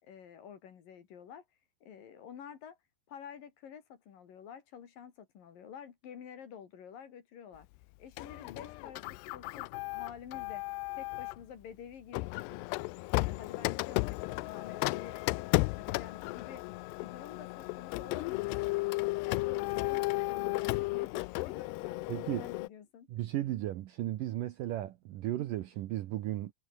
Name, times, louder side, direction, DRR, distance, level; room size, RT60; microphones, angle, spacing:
voice 1, 0.0-1.4 1.8-2.8 3.1-7.7 8.0-10.7 10.9-12.6 13.1-16.7 17.0-18.9 19.3-23.1, left 8 dB, 60° left, 3.8 m, -49 dB
Printer, 8.2-11.4 12.1-22.7, left 23 dB, 80° left, 2.5 m, -34 dB
voice 2, 22.1-22.5 23.1-26.5, right 14 dB, 75° right, 2.1 m, -35 dB
omnidirectional pair, 4.9 m